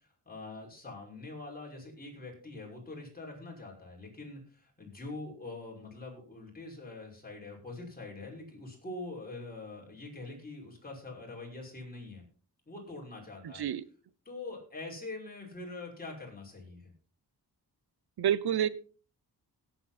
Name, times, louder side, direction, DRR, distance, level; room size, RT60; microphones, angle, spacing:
voice 1, 0.0-12.2 12.7-13.6 14.3-16.9, left 2 dB, 25° left, -1 dB, 5.8 m, -44 dB
voice 2, 13.4-13.8 18.2-18.7, right 9 dB, 75° right, 18 dB, 0.9 m, -28 dB
17.0 x 8.2 x 4.2 m, 0.39 s
wide cardioid pair, 115°, 38 cm